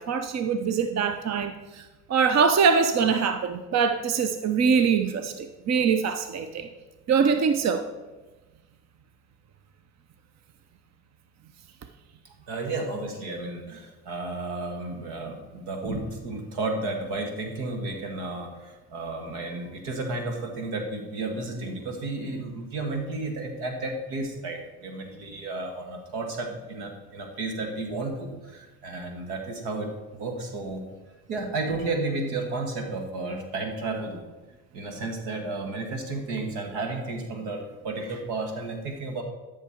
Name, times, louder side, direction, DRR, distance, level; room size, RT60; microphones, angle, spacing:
voice 1, 0.0-6.7 7.1-7.9, right 6 dB, 45° right, 8 dB, 0.8 m, -23 dB
voice 2, 12.5-30.9 31.3-34.2 34.7-39.2, right 2 dB, 80° right, 4 dB, 1.8 m, -32 dB
13.0 x 6.0 x 4.5 m, 1.2 s
hypercardioid pair, 60°, 39 cm